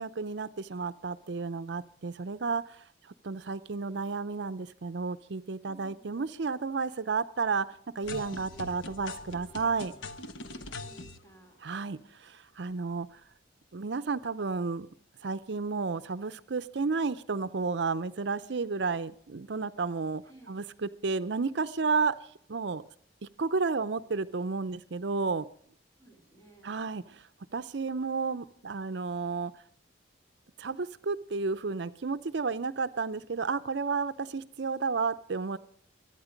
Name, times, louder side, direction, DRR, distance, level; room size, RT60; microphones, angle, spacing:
voice 1, 0.0-2.6 3.2-7.7 8.0-9.9 11.6-13.1 13.7-14.9 15.2-20.2 20.5-22.1 22.5-22.8 23.4-25.4 26.6-27.2 27.5-29.5 30.6-35.6, right 4 dB, 65° right, 14 dB, 0.6 m, -32 dB
voice 2, 5.6-6.1 10.5-11.6 20.2-20.7 26.0-26.7, right 2 dB, 15° left, 2 dB, 4.1 m, -57 dB
sound 1, 8.0-11.2, left 3 dB, 85° left, 1.2 m, -42 dB
23.0 x 9.6 x 5.1 m, 0.63 s
head